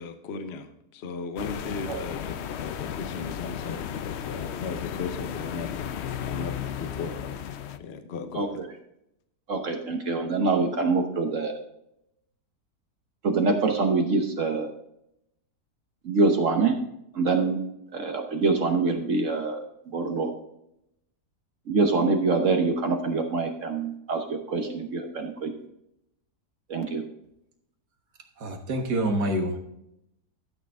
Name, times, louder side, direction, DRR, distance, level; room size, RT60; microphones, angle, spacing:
voice 1, 0.0-7.3 7.8-8.6, left 4 dB, 50° left, 8 dB, 1.0 m, -37 dB
sound 1, 1.4-7.8, left 9 dB, 65° left, 0.6 m, -34 dB
voice 2, 8.3-8.7 9.5-11.6 13.2-14.7 16.0-16.7 17.1-17.6 17.9-19.6 19.9-20.3 21.7-25.5 26.7-27.0, right 3 dB, 55° right, 4 dB, 1.2 m, -25 dB
voice 3, 28.4-29.6, right 1 dB, 85° right, 4 dB, 2.0 m, -26 dB
13.0 x 6.5 x 3.6 m, 0.79 s
omnidirectional pair, 1.7 m